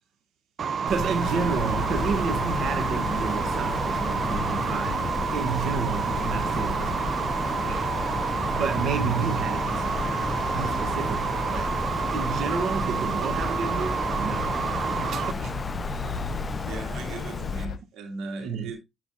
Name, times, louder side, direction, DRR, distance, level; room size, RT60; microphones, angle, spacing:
sound 1, 0.6-15.3, right 7 dB, 55° right, 0.5 m, -29 dB
voice 1, 0.8-7.9 8.5-10.2 10.5-11.7 12.1-14.6 15.1-15.7 16.1-16.2 18.4-18.7, right 6 dB, 70° right, 1.2 m, -31 dB
Wind, 0.9-17.6, left 3 dB, 30° left, 0.4 m, -33 dB
sound 2, 1.2-17.8, left 5 dB, 70° left, 1.1 m, -36 dB
voice 2, 16.6-18.8, right 3 dB, 85° right, 2.8 m, -38 dB
11.0 x 5.5 x 2.7 m
cardioid pair, 90°, 0 cm